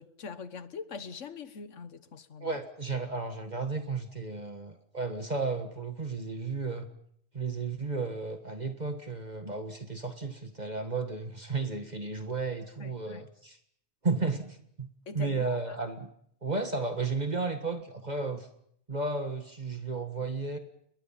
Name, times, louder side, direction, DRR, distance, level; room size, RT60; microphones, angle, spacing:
voice 1, 0.0-2.6 12.8-13.3 15.1-15.8, left 5 dB, 80° left, 1.6 m, -43 dB
voice 2, 2.4-6.9 7.3-13.6 14.0-14.9 15.1-16.1 16.4-18.5 18.9-20.6, right 3 dB, 35° right, 1.7 m, -33 dB
28.5 x 21.5 x 5.8 m
omnidirectional pair, 1.2 m